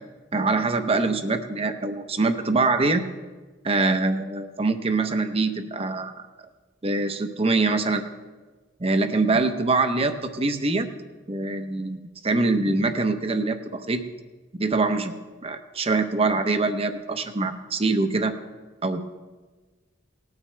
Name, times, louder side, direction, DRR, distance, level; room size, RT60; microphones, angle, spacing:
voice 1, 0.3-3.0 3.6-6.1 6.8-8.0 8.8-10.9 11.3-14.0 14.6-15.1 15.4-18.3 18.8-19.0, right 3 dB, 30° right, 8 dB, 0.8 m, -24 dB
18.5 x 9.5 x 3.3 m, 1.3 s
head